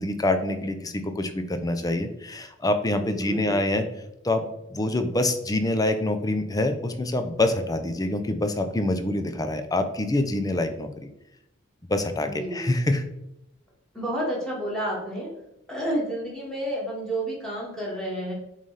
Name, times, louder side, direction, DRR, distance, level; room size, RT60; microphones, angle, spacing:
voice 1, 0.0-3.8 4.2-11.1 11.8-13.0, left 1 dB, 20° left, 8 dB, 0.5 m, -26 dB
voice 2, 3.0-3.8 12.2-12.7 13.9-15.3 15.7-18.3, right 1 dB, 5° left, -5 dB, 2.0 m, -30 dB
7.3 x 3.3 x 4.1 m, 0.85 s
head